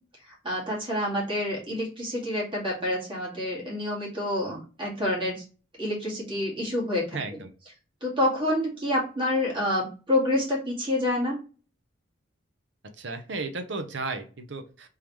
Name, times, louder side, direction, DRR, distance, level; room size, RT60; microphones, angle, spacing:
voice 1, 0.3-5.4 5.8-7.4 8.0-11.4, left 1 dB, 25° right, -5 dB, 2.1 m, -28 dB
voice 2, 7.1-7.5 13.0-14.9, right 3 dB, 70° right, 8 dB, 0.8 m, -34 dB
3.7 x 3.4 x 3.1 m, 0.36 s
head